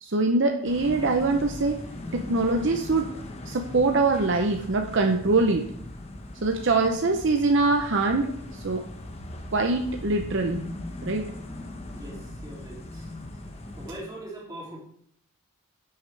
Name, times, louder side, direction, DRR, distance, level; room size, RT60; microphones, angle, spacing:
voice 1, 0.0-1.8 2.1-3.1 3.5-5.6 6.4-8.3 8.6-8.8 9.5-10.6 11.0-11.3, right 3 dB, 55° right, 3 dB, 0.7 m, -23 dB
sound 1, 0.6-13.9, left 1 dB, 30° left, 1.0 m, -39 dB
voice 2, 11.9-13.1 13.7-14.8, right 1 dB, 15° right, -4 dB, 2.9 m, -41 dB
10.5 x 7.9 x 3.3 m, 0.67 s
head